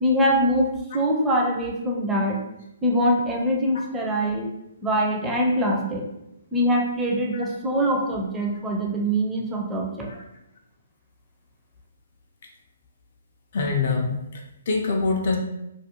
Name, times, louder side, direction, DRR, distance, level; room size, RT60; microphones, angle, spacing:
voice 1, 0.0-2.4 2.8-4.5 4.8-6.1 6.5-10.1, equal, 10° right, -1 dB, 0.5 m, -23 dB
voice 2, 13.5-15.4, left 4 dB, 50° left, 1 dB, 0.4 m, -25 dB
2.4 x 2.2 x 2.8 m, 0.88 s
figure-of-eight pair, 130°, 0 cm